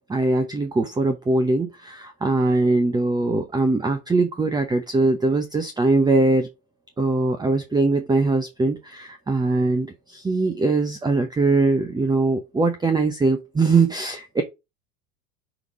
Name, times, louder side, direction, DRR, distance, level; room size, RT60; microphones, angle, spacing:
voice 1, 0.1-6.5 7.0-14.4, right 3 dB, 10° right, 0.7 m, -21 dB
5.9 x 3.3 x 4.7 m
hypercardioid pair, 90°, 40 cm